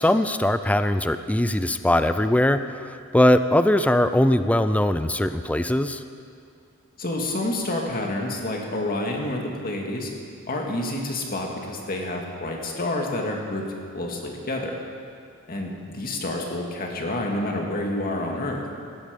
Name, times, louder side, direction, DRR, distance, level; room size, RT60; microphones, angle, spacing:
voice 1, 0.0-6.0, left 1 dB, 5° left, 11 dB, 0.4 m, -21 dB
voice 2, 7.0-10.1 10.5-13.7 13.9-14.8 15.5-18.6, left 1 dB, 40° left, 0 dB, 2.1 m, -28 dB
17.0 x 14.5 x 5.3 m, 2.4 s
head